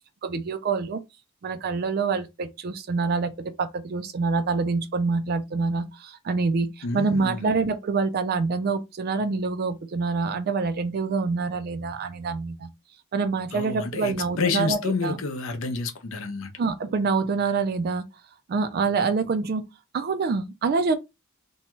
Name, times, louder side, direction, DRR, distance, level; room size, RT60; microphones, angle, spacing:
voice 1, 0.2-1.0 1.4-12.7 13.1-15.2 16.6-18.1 18.5-19.6 19.9-21.0, right 4 dB, 45° right, 0.3 m, -26 dB
voice 2, 6.8-7.5 13.5-16.5, left 4 dB, 65° left, 0.6 m, -29 dB
2.7 x 2.2 x 2.9 m
head